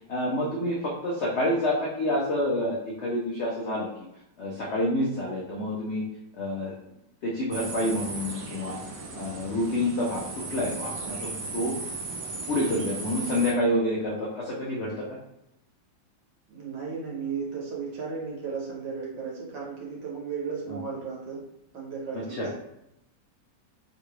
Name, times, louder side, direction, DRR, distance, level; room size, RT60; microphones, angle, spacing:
voice 1, 0.1-3.9 4.4-6.0 6.3-6.8 7.2-8.8 9.1-11.8 12.5-15.0 20.7-20.8 22.1-22.5, left 1 dB, 75° left, -4 dB, 0.6 m, -28 dB
sound 1, 7.5-13.5, right 3 dB, 70° right, 0.9 m, -36 dB
voice 2, 16.5-21.4 21.7-22.5, right 5 dB, 85° right, -3 dB, 1.7 m, -35 dB
3.7 x 2.9 x 2.4 m, 0.84 s
omnidirectional pair, 1.9 m